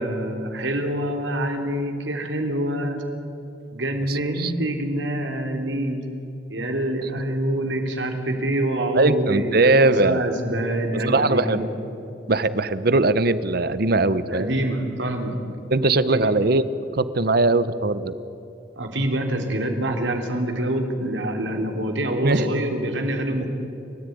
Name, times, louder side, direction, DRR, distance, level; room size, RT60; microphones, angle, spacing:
voice 1, 0.0-3.0 3.7-6.0 6.5-11.7 14.3-15.4 16.1-16.3 18.8-23.5, right 1 dB, 85° right, 4 dB, 3.3 m, -26 dB
voice 2, 4.1-4.5 7.0-7.1 9.0-10.2 10.9-11.6 12.3-14.6 15.7-16.7 16.9-18.1 22.2-22.5, right 2 dB, 55° right, 14 dB, 1.0 m, -20 dB
30.0 x 14.5 x 9.4 m, 2.8 s
head